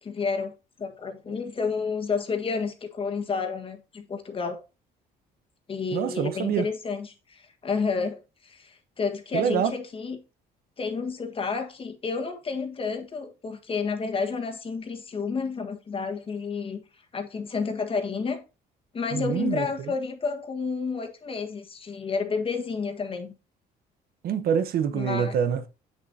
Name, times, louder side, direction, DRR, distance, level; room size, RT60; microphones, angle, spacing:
voice 1, 0.0-4.6 5.7-10.2 10.8-16.8 17.1-18.4 18.9-23.3 24.9-25.4, left 5 dB, 35° left, 1.5 m, -30 dB
voice 2, 5.9-6.7 9.3-9.7 19.1-19.7 24.2-25.8, right 8 dB, 65° right, 1.0 m, -26 dB
8.0 x 6.6 x 2.8 m
cardioid pair, 110°, 17 cm